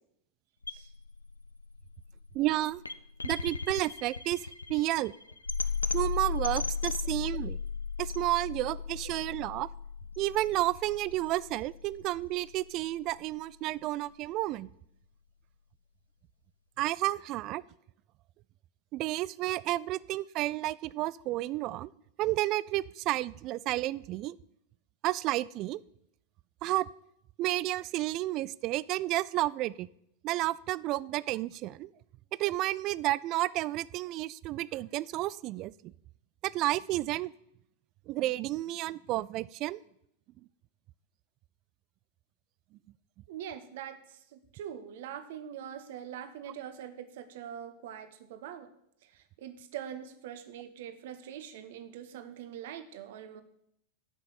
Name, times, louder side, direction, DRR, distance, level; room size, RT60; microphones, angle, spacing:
sound 1, 0.6-12.7, left 5 dB, 80° left, 0.5 m, -36 dB
voice 1, 2.3-2.8 3.2-5.1 5.9-7.6 8.0-9.7 10.2-14.7 16.8-17.6 18.9-21.9 22.2-24.4 25.0-25.8 26.6-26.9 27.4-29.9 30.2-31.9 32.4-35.9 36.4-37.3 38.1-39.8, right 16 dB, 40° right, 21 dB, 0.3 m, -31 dB
voice 2, 43.3-48.7 49.0-53.4, right 9 dB, 55° right, 11 dB, 1.0 m, -43 dB
10.5 x 5.7 x 7.3 m, 0.74 s
figure-of-eight pair, 90°, 0 cm